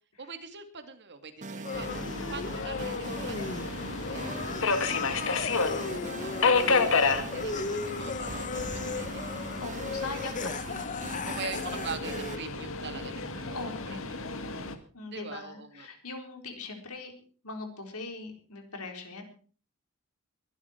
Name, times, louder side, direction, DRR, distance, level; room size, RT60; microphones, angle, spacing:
voice 1, 0.2-3.5 4.1-9.1 9.3-9.6 11.2-13.2 13.5-14.6 15.1-15.9, right 5 dB, 55° right, 8 dB, 2.3 m, -44 dB
sound 1, 1.4-12.4, right 2 dB, 35° right, 1.3 m, -42 dB
sound 2, 1.6-12.4, left 4 dB, 35° left, 1.0 m, -37 dB
Subway metro underground, 1.7-14.8, left 4 dB, 65° left, 1.9 m, -31 dB
voice 2, 9.6-11.5 13.3-14.0 14.9-17.1 17.4-19.2, left 3 dB, 90° left, 4 dB, 4.3 m, -41 dB
22.0 x 12.0 x 4.5 m, 0.41 s
head